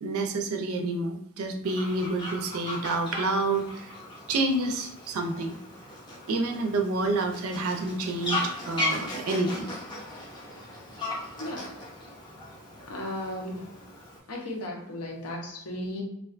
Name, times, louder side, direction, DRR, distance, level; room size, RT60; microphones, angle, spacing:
voice 1, 0.0-3.9 4.3-5.6 6.3-9.7, right 2 dB, 70° right, 4 dB, 0.4 m, -28 dB
Fowl, 1.6-14.2, left 2 dB, 20° left, 0.5 m, -37 dB
voice 2, 11.4-11.7 12.9-13.7 14.3-16.0, left 1 dB, 85° left, 0 dB, 0.6 m, -35 dB
2.4 x 2.2 x 2.4 m, 0.77 s
head